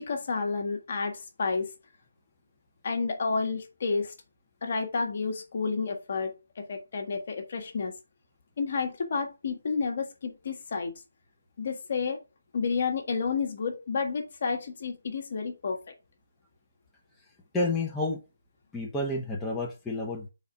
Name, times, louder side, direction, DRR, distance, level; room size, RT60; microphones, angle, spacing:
voice 1, 0.0-1.7 2.8-4.1 4.6-7.9 8.6-10.9 11.6-12.2 12.5-15.8, left 4 dB, 45° left, 1.4 m, -30 dB
voice 2, 17.5-18.2 18.7-20.3, left 2 dB, 5° left, 1.0 m, -30 dB
4.7 x 4.2 x 5.8 m
figure-of-eight pair, 150°, 0 cm